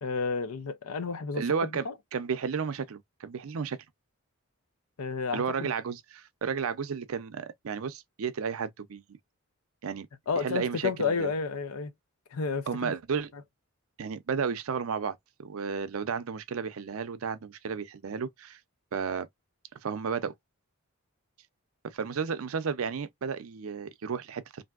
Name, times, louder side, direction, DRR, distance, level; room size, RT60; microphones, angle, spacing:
voice 1, 0.0-1.9 5.0-5.7 10.3-11.9 12.3-12.9, left 5 dB, 85° left, 0.5 m, -31 dB
voice 2, 1.3-3.8 5.3-9.0 9.8-10.1 10.4-11.3 12.7-13.3 14.0-18.6 18.9-19.3 19.8-20.3 21.8-24.6, right 6 dB, 75° right, 0.5 m, -33 dB
3.4 x 2.6 x 2.3 m
head